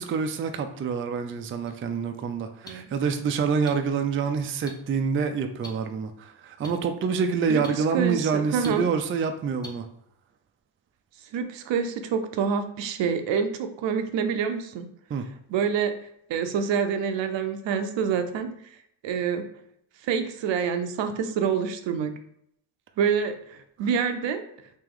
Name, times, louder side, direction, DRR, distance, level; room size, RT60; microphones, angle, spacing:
voice 1, 0.0-9.9 15.1-15.3, right 5 dB, 30° right, 7 dB, 0.4 m, -27 dB
sound 1, 1.7-1.8 2.7-2.8 3.7-3.8 4.7-4.8 5.6-5.7 6.6-6.7 7.6-7.7 8.6-8.7 9.6-9.7, left 1 dB, 10° left, 0.7 m, -40 dB
voice 2, 7.5-8.9 11.3-14.9 15.5-15.9 16.3-18.5 19.0-19.5 20.0-22.1 23.0-24.4, right 6 dB, 70° right, 8 dB, 0.6 m, -27 dB
3.0 x 2.9 x 3.7 m, 0.72 s
cardioid pair, 85°, 46 cm